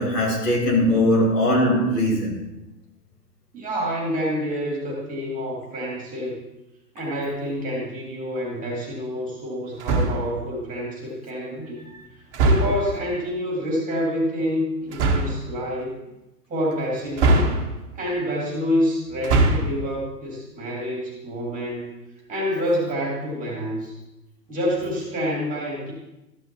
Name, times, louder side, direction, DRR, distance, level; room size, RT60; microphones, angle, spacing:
voice 1, 0.0-2.4, left 1 dB, 70° left, -3 dB, 3.8 m, -20 dB
voice 2, 3.5-6.4 6.9-11.8 12.4-16.0 16.5-17.5 17.9-21.9 22.3-24.0 24.5-25.9, equal, 15° right, -3 dB, 2.6 m, -27 dB
sound 1, 9.8-10.4 12.3-13.0 14.9-15.4 17.2-18.0 19.1-19.8, right 2 dB, 40° right, 1.4 m, -21 dB
13.0 x 9.5 x 3.0 m, 0.95 s
figure-of-eight pair, 120°, 50 cm